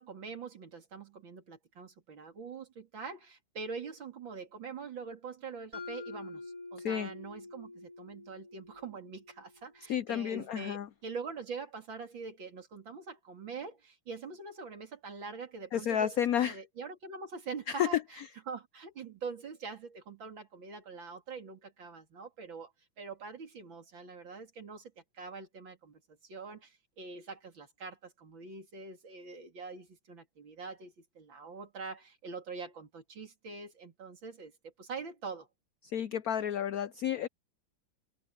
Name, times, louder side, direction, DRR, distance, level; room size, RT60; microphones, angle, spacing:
voice 1, 0.0-22.7 23.0-35.5, right 4 dB, 70° right, 3.6 m, -44 dB
Mallet percussion, 5.7-9.8, left 3 dB, 45° right, 7.2 m, -47 dB
voice 2, 9.9-10.9 15.7-16.6 17.7-18.0 35.9-37.3, left 9 dB, 75° left, 0.8 m, -31 dB
omnidirectional pair, 2.2 m